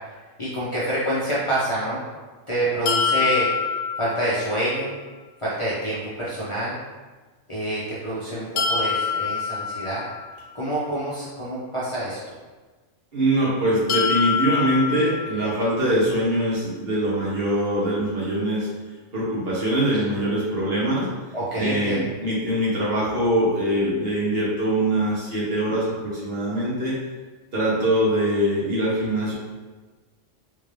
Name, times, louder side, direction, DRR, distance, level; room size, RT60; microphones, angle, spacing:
voice 1, 0.4-2.0 2.5-3.5 4.0-5.0 5.4-6.8 7.5-10.0 10.5-12.2 21.3-22.1, right 1 dB, 30° left, -9 dB, 0.6 m, -27 dB
sound 1, 2.9-4.8 8.6-10.6 13.9-15.9, left 6 dB, 80° left, 0.9 m, -26 dB
voice 2, 13.1-18.7 19.1-21.1 21.6-26.9 27.5-29.3, right 1 dB, 50° right, -7 dB, 1.2 m, -23 dB
3.7 x 2.6 x 3.2 m, 1.3 s
omnidirectional pair, 1.3 m